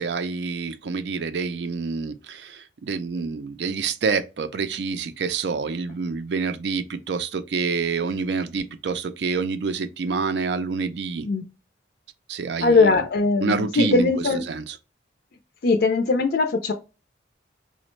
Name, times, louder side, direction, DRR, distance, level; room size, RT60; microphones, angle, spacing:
voice 1, 0.0-11.3 12.3-13.1 13.4-14.8, right 4 dB, 65° right, 0.4 m, -27 dB
voice 2, 12.6-14.4 15.6-16.7, left 3 dB, 55° left, 0.4 m, -20 dB
4.9 x 2.1 x 3.0 m
head